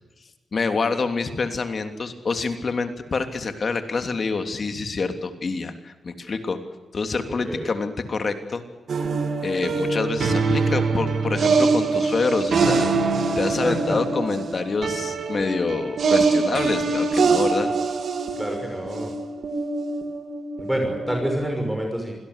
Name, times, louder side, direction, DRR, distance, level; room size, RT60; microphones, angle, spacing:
voice 1, 0.5-6.6 6.9-8.6 9.4-12.9 13.3-17.7, left 4 dB, 50° left, 7 dB, 3.1 m, -26 dB
voice 2, 7.3-7.7 13.6-14.0 18.4-19.1 20.6-22.2, right 1 dB, 5° right, 3 dB, 6.0 m, -27 dB
sound 1, 8.9-21.6, right 4 dB, 70° right, 3.3 m, -24 dB
26.0 x 18.0 x 8.3 m, 1.2 s
cardioid pair, 70°, 0 cm